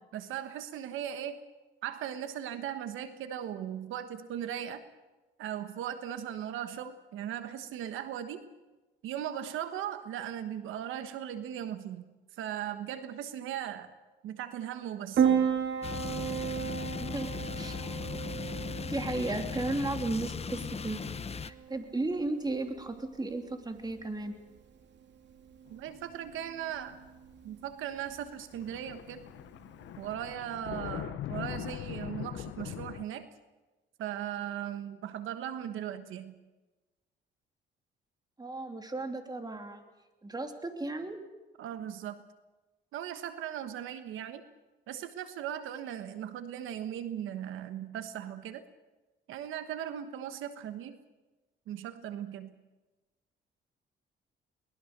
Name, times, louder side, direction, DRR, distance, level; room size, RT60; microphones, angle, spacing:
voice 1, 0.1-1.4 1.8-4.8 5.4-8.5 9.0-13.9 14.2-15.5 25.7-27.0 27.4-29.2 30.0-33.3 34.0-36.4 41.6-42.2 42.9-44.4 44.9-48.7 49.3-51.0 51.7-52.5, right 10 dB, 90° right, 10 dB, 1.3 m, -38 dB
Piano, 15.2-30.1, right 8 dB, 60° right, 2.7 m, -35 dB
sound 1, 15.8-21.5, left 6 dB, 30° left, 0.9 m, -38 dB
voice 2, 17.0-17.8 18.8-21.0 21.4-24.3 38.4-39.8 40.2-41.2, right 2 dB, 20° right, 5 dB, 3.0 m, -35 dB
sound 2, 25.7-26.3 26.6-27.0 27.9-28.1 28.4-33.0, left 12 dB, 75° left, 0.8 m, -41 dB
23.0 x 20.5 x 6.7 m, 1.2 s
cardioid pair, 90°, 20 cm